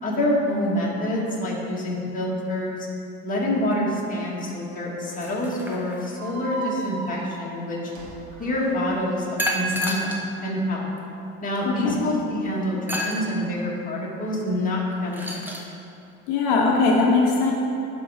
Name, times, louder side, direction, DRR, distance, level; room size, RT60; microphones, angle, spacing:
voice 1, 0.0-2.9 3.2-7.9 8.4-10.9 11.4-15.4, left 1 dB, 25° left, -4 dB, 1.9 m, -26 dB
sound 1, 5.1-6.3 9.4-10.3 11.0-11.1 12.9-13.2 14.9-15.7, equal, 5° right, 1.0 m, -29 dB
sound 2, 6.2-9.3, right 3 dB, 60° right, 1.3 m, -37 dB
voice 2, 11.6-12.0 16.3-17.5, left 3 dB, 75° left, -1 dB, 1.0 m, -20 dB
11.0 x 3.8 x 5.0 m, 2.7 s
supercardioid pair, 105°, 32 cm